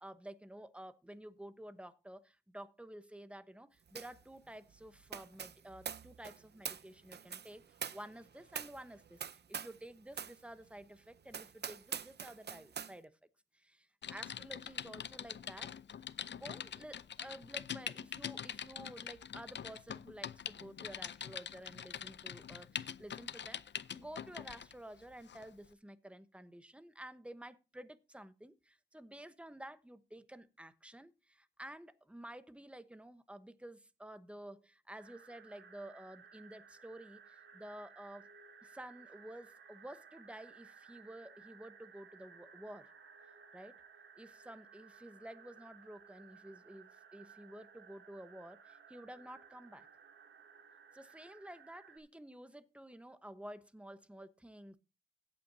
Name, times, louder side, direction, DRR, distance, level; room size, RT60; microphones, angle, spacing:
voice 1, 0.0-13.2 13.5-15.8 16.3-23.6 23.9-38.3 38.6-42.9 43.5-43.8 44.2-49.9 50.9-54.8, right 1 dB, 5° right, 1.0 m, -51 dB
sound 1, 4.0-4.2 4.5-9.8 10.1-10.4 10.8-10.9 11.3-12.9, right 7 dB, 60° right, 0.6 m, -45 dB
Typing, 14.0-24.7 25.3-25.5, left 8 dB, 65° left, 0.6 m, -44 dB
sound 2, 35.0-52.0, right 6 dB, 85° right, 2.5 m, -59 dB
16.5 x 8.6 x 2.7 m
wide cardioid pair, 90°, 20 cm